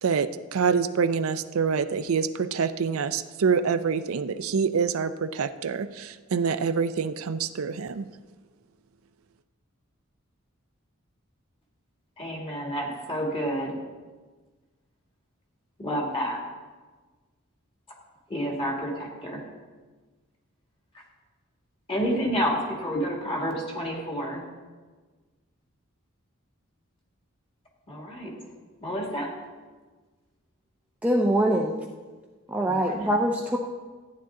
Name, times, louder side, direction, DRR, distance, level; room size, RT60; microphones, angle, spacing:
voice 1, 0.0-8.1, right 6 dB, 75° right, 11 dB, 0.5 m, -26 dB
voice 2, 12.2-13.8 15.8-16.4 18.3-19.4 21.9-24.4 27.9-28.3 28.8-29.3 32.6-33.1, equal, 25° left, -1 dB, 2.2 m, -29 dB
voice 3, 31.0-31.8 32.5-33.6, right 1 dB, 5° right, -1 dB, 0.5 m, -23 dB
14.0 x 9.6 x 3.7 m, 1.4 s
head